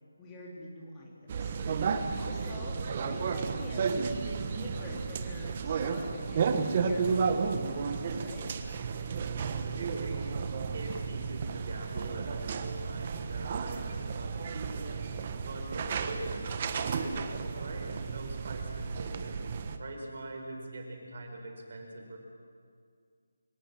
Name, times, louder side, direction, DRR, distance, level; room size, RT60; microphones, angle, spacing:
voice 1, 0.2-1.6 2.2-8.5, left 1 dB, 10° left, -3 dB, 2.6 m, -46 dB
sound 1, 1.3-19.8, right 5 dB, 30° right, 1.2 m, -33 dB
voice 2, 9.6-10.4 10.7-15.1 15.4-22.2, right 2 dB, 45° right, 3 dB, 4.6 m, -43 dB
25.0 x 18.0 x 7.5 m, 2.2 s
figure-of-eight pair, 170°, 0 cm